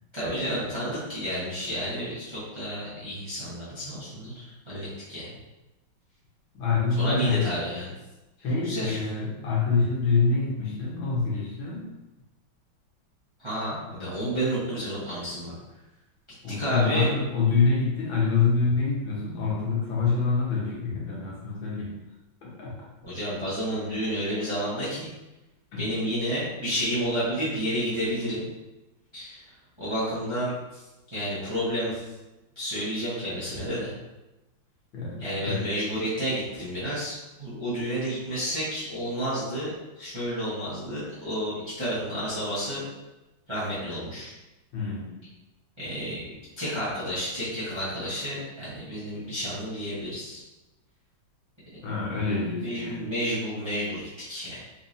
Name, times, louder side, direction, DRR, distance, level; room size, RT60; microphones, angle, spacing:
voice 1, 0.1-5.3 6.9-7.9 8.4-9.0 13.4-15.5 16.5-17.1 23.0-25.1 25.8-28.4 29.1-29.4 29.8-30.8 31.1-32.1 32.5-33.9 35.2-42.9 43.5-44.3 45.8-50.4 52.6-54.6, equal, 20° right, -11 dB, 0.9 m, -31 dB
voice 2, 6.5-7.5 8.4-11.9 16.4-21.9 22.4-22.7 25.7-25.9 34.9-35.6 44.7-45.1 51.8-53.1, left 4 dB, 75° left, -5 dB, 1.8 m, -26 dB
4.0 x 2.9 x 2.6 m, 1.0 s
omnidirectional pair, 2.2 m